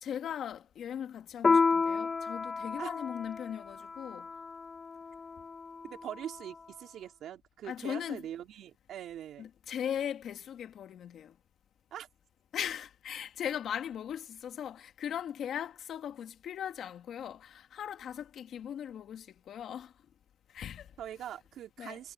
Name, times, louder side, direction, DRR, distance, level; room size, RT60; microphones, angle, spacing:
voice 1, 0.0-4.3 7.6-8.2 9.4-11.4 12.5-19.9 20.5-20.9 21.8-22.0, left 9 dB, 70° left, 2.2 m, -39 dB
Piano, 1.4-6.4, left 4 dB, 35° left, 1.7 m, -31 dB
voice 2, 5.8-9.5 11.9-12.1 21.0-22.1, right 11 dB, 75° right, 3.5 m, -43 dB
cardioid pair, 90°, 0 cm